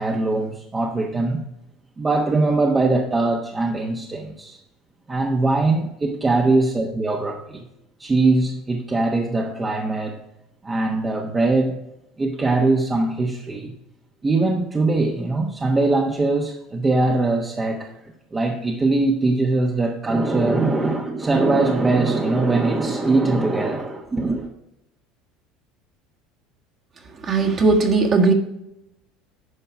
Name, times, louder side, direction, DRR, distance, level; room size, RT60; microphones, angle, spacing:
voice 1, 0.0-1.4 2.0-4.6 5.1-7.6 8.0-10.2 10.6-11.8 12.2-13.7 14.2-17.9 18.3-24.5, right 2 dB, 20° right, 1.1 m, -21 dB
voice 2, 27.2-28.3, right 3 dB, 40° right, 1.7 m, -17 dB
9.8 x 5.5 x 4.7 m
supercardioid pair, 100°, 0 cm